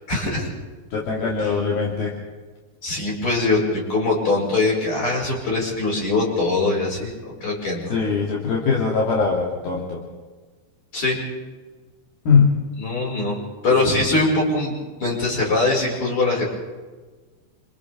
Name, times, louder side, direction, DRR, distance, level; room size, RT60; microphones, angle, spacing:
voice 1, 0.1-0.5 1.2-1.6 2.8-7.9 10.9-11.2 12.8-14.7 15.0-16.4, left 2 dB, 30° left, -2 dB, 6.5 m, -22 dB
voice 2, 0.9-2.1 7.9-10.0 12.3-12.5 13.8-14.1, left 5 dB, 60° left, -3 dB, 4.1 m, -21 dB
28.5 x 27.0 x 3.7 m, 1.3 s
omnidirectional pair, 4.9 m